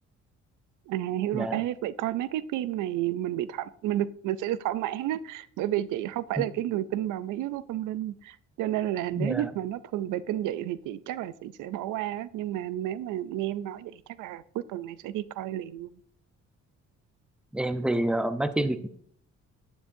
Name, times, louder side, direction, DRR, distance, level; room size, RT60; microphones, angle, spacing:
voice 1, 0.9-15.9, right 13 dB, 85° right, 16 dB, 0.5 m, -31 dB
voice 2, 9.1-9.5 17.5-18.9, right 1 dB, 5° right, 10 dB, 0.7 m, -28 dB
11.0 x 9.9 x 2.6 m, 0.62 s
cardioid pair, 90°, 30 cm